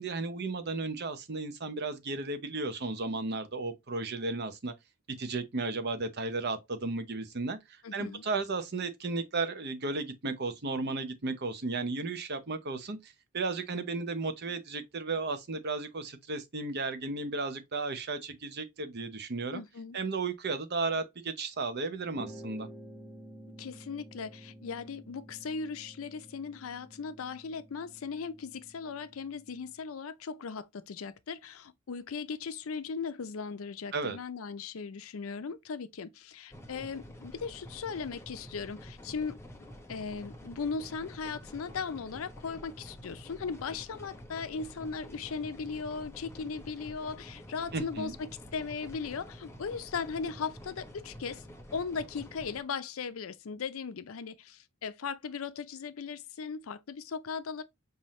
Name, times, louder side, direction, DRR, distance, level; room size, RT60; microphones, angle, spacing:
voice 1, 0.0-4.7 5.2-19.6 19.9-22.7 33.9-34.2 47.7-48.1, right 3 dB, 50° right, 0.8 m, -34 dB
voice 2, 7.8-8.2 19.5-20.0 23.6-39.4 39.9-51.4 51.7-57.6, left 5 dB, 80° left, 0.5 m, -38 dB
sound 1, 22.1-29.8, right 1 dB, 10° right, 0.9 m, -51 dB
sound 2, 36.5-52.6, equal, 15° left, 0.7 m, -48 dB
5.6 x 2.7 x 3.1 m
head